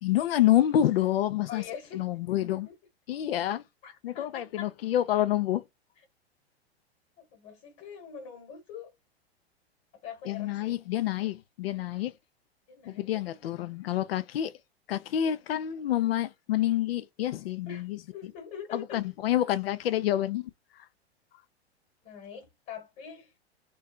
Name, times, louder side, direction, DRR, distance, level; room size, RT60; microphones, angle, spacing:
voice 1, 0.0-1.6 1.9-2.7 3.1-3.6 4.0-5.6 10.3-12.1 12.9-14.5 14.9-18.3 18.7-20.9, left 12 dB, 60° left, 0.5 m, -28 dB
voice 2, 1.5-2.0 3.8-4.7 7.3-8.9 10.0-10.7 12.7-13.0 17.7-19.0 22.0-23.3, left 7 dB, 35° left, 1.3 m, -43 dB
2.6 x 2.3 x 2.4 m
figure-of-eight pair, 100°, 33 cm